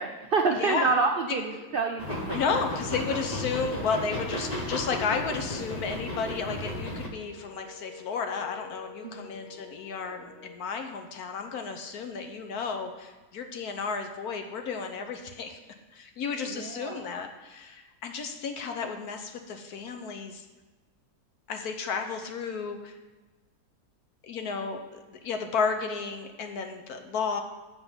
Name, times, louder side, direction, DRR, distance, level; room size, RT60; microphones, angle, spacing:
voice 1, 0.0-2.4 9.0-9.3 16.5-17.1, right 4 dB, 70° right, 3 dB, 0.5 m, -28 dB
voice 2, 0.5-0.9 1.3-1.4 2.3-15.6 15.9-20.4 21.5-23.0 24.2-27.4, left 5 dB, 70° left, 5 dB, 1.3 m, -33 dB
sound 1, 1.4-10.6, left 5 dB, 50° left, 1.1 m, -49 dB
sound 2, 2.0-7.1, left 1 dB, 30° left, 0.8 m, -34 dB
7.8 x 4.7 x 7.1 m, 1.2 s
omnidirectional pair, 1.7 m